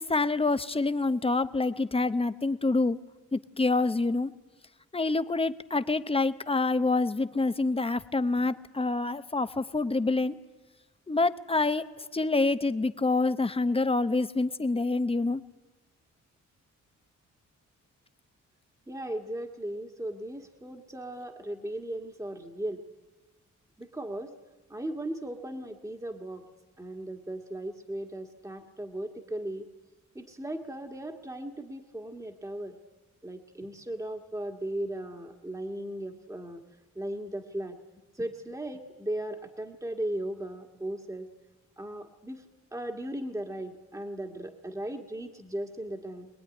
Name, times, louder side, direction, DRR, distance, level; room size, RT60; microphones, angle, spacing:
voice 1, 0.0-3.0 3.3-4.3 4.9-10.4 11.1-11.9 12.1-15.4, left 3 dB, 20° left, 12 dB, 0.8 m, -27 dB
voice 2, 18.9-22.8 23.8-24.3 24.7-26.4 26.8-29.7 30.1-32.8 33.2-36.6 36.9-37.8 38.1-41.3 41.8-46.3, right 1 dB, 10° right, 3 dB, 1.7 m, -37 dB
23.5 x 20.5 x 9.9 m, 1.2 s
wide cardioid pair, 130°, 32 cm